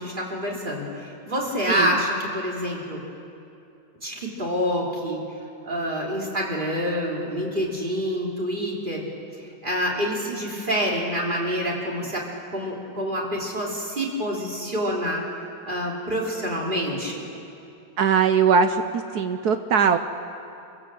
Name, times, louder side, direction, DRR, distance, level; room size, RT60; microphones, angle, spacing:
voice 1, 0.0-3.0 4.0-5.2 5.6-9.0 9.6-12.2 12.5-15.2 15.7-17.3, equal, 25° right, -3 dB, 3.5 m, -27 dB
voice 2, 18.0-18.8 19.1-20.0, right 6 dB, 65° right, 8 dB, 1.2 m, -20 dB
26.0 x 15.5 x 7.7 m, 2.7 s
omnidirectional pair, 1.9 m